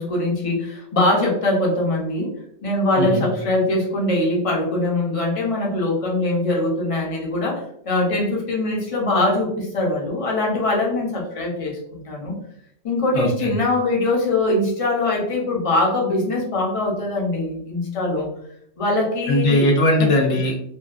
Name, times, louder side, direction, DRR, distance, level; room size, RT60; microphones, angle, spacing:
voice 1, 0.0-2.3 2.6-12.3 12.8-18.3 18.8-19.7 20.0-20.1, left 2 dB, 35° left, -1 dB, 0.6 m, -22 dB
voice 2, 13.1-13.5 19.3-20.6, left 1 dB, 85° left, 0 dB, 0.9 m, -19 dB
2.7 x 2.3 x 2.3 m, 0.71 s
omnidirectional pair, 1.2 m